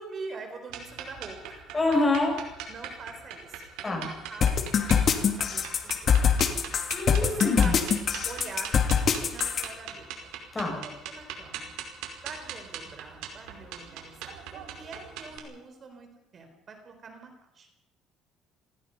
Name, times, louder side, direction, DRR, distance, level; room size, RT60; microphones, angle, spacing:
voice 1, 0.0-1.6 2.7-6.2 7.2-7.9 8.2-8.7 9.1-10.3 10.7-11.7 12.2-17.7, right 4 dB, 40° right, 5 dB, 4.1 m, -44 dB
sound 1, 0.7-15.4, right 8 dB, 85° right, 4.9 m, -41 dB
voice 2, 1.7-2.3 3.8-4.1 6.9-7.7 10.5-10.8, left 2 dB, 20° left, 1 dB, 6.7 m, -26 dB
sound 2, 4.4-9.6, left 7 dB, 40° left, 2.5 m, -23 dB
27.0 x 20.0 x 5.5 m, 0.94 s
cardioid pair, 125°, 0 cm